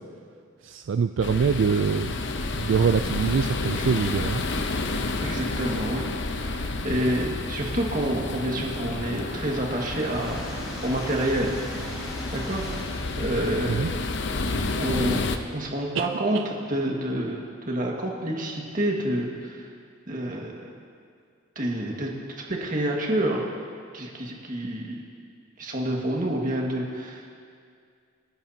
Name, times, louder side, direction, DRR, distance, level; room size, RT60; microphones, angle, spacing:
voice 1, 0.6-2.2 2.5-4.4 13.7-13.9 15.9-16.1 16.3-16.4, right 6 dB, 70° right, 9 dB, 0.4 m, -24 dB
sound 1, 1.2-15.4, left 3 dB, 60° left, 0.7 m, -30 dB
voice 2, 5.2-6.0 6.3-11.6 12.3-12.9 13.2-14.1 14.8-19.7 20.1-20.8 21.6-22.1 22.4-23.4 23.9-25.0 25.6-27.3, right 1 dB, 45° right, -1 dB, 1.8 m, -28 dB
sound 2, 8.7-14.6, right 1 dB, 5° right, 3.7 m, -41 dB
28.5 x 10.5 x 2.8 m, 2.2 s
head